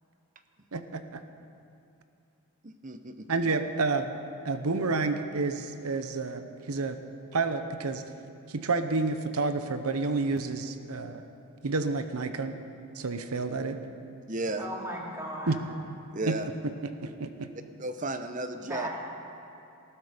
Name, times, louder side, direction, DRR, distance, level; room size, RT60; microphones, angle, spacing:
voice 1, 0.7-1.2 3.3-4.1 4.4-7.0 7.3-8.0 8.5-11.3 11.6-12.6 13.0-13.8 15.5-15.6 16.3-16.4 17.0-17.5, right 3 dB, 80° right, 9 dB, 0.8 m, -29 dB
voice 2, 2.6-3.3 14.3-14.7 16.1-16.5 17.8-18.9, right 2 dB, 35° right, 8 dB, 0.8 m, -34 dB
voice 3, 14.6-15.7 18.7-18.9, equal, 10° right, -3 dB, 2.4 m, -36 dB
19.5 x 13.5 x 5.1 m, 2.7 s
head